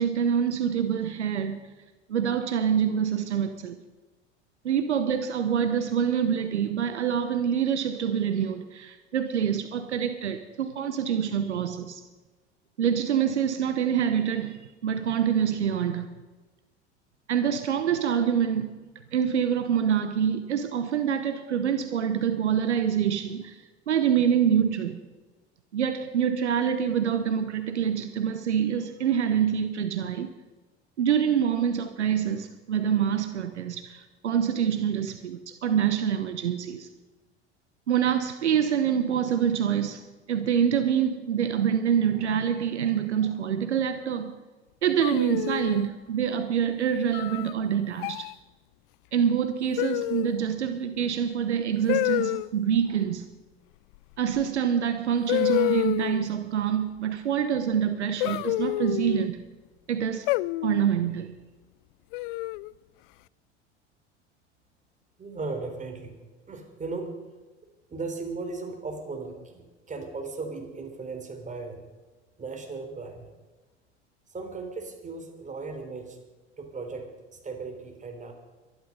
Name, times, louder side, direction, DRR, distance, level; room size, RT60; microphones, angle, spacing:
voice 1, 0.0-1.6 2.1-3.8 4.6-12.0 12.8-16.1 17.3-18.7 19.1-23.6 23.9-25.0 25.7-30.3 31.0-36.9 37.9-40.0 40.3-44.3 44.8-48.3 49.1-53.3 54.2-59.4 59.9-60.3 60.6-61.3, right 8 dB, 80° right, 1.0 m, -26 dB
sound 1, 45.0-45.9 47.1-47.5 48.0-48.3 49.8-50.4 51.9-52.5 54.4-54.5 55.3-56.3 58.2-59.3 60.3-60.9 62.1-62.7, left 19 dB, 55° left, 0.4 m, -28 dB
voice 2, 65.2-66.1 66.5-67.1 67.9-71.8 72.4-73.3 74.3-76.2 76.6-78.3, right 3 dB, 20° right, 3.8 m, -37 dB
23.5 x 11.0 x 5.4 m
figure-of-eight pair, 75°, 34 cm